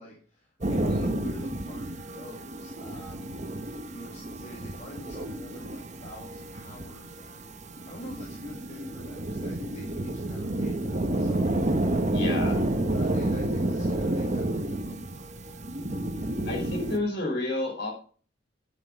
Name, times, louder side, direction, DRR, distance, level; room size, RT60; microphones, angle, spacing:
voice 1, 0.0-12.1 12.8-15.4, left 1 dB, 40° left, -2 dB, 2.3 m, -46 dB
sound 1, 0.6-17.0, right 1 dB, 40° right, 1.1 m, -30 dB
voice 2, 12.1-12.7 16.4-17.9, left 2 dB, 60° left, 0 dB, 4.8 m, -30 dB
9.2 x 7.7 x 5.1 m, 0.41 s
head